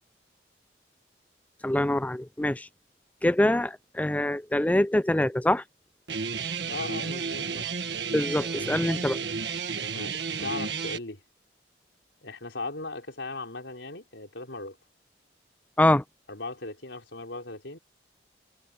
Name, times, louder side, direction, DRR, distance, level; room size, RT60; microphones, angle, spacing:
voice 1, 1.6-2.7 3.2-5.6 8.1-9.2 15.8-16.0, left 1 dB, 10° left, 0.4 m, -24 dB
Guitar, 6.1-11.0, right 5 dB, 70° right, 1.5 m, -32 dB
voice 2, 6.7-7.7 9.9-11.2 12.2-14.8 16.3-17.8, left 3 dB, 80° left, 4.6 m, -38 dB
head